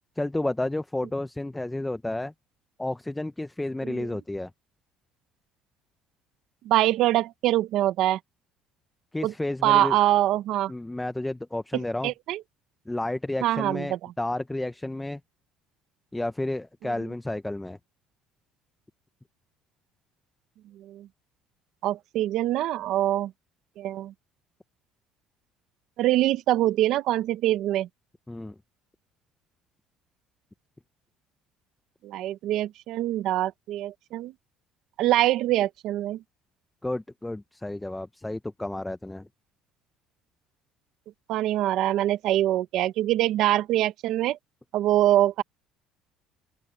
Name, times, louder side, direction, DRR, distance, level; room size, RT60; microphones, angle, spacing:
voice 1, 0.2-2.3 2.8-4.5 9.1-10.0 10.7-12.1 12.9-15.2 16.1-17.8 28.3-28.5 36.8-39.3, left 1 dB, 5° left, 0.6 m, -31 dB
voice 2, 6.6-8.2 9.2-9.3 9.6-10.7 12.0-12.4 13.4-14.0 20.8-21.1 21.8-23.3 23.8-24.1 26.0-27.9 32.0-34.3 35.0-36.2 41.3-44.4 44.7-45.4, right 14 dB, 60° right, 0.8 m, -24 dB
open air
cardioid pair, 160°, 0 cm